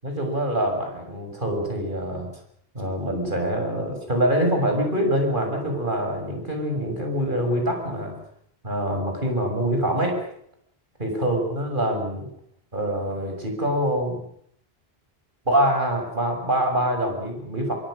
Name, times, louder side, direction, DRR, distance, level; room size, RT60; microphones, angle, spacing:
voice 1, 0.0-2.3 2.7-8.1 8.6-10.2 11.0-12.3 12.7-14.2 15.5-17.7, right 1 dB, 55° right, 3 dB, 6.5 m, -25 dB
26.0 x 23.5 x 6.4 m, 0.69 s
omnidirectional pair, 1.0 m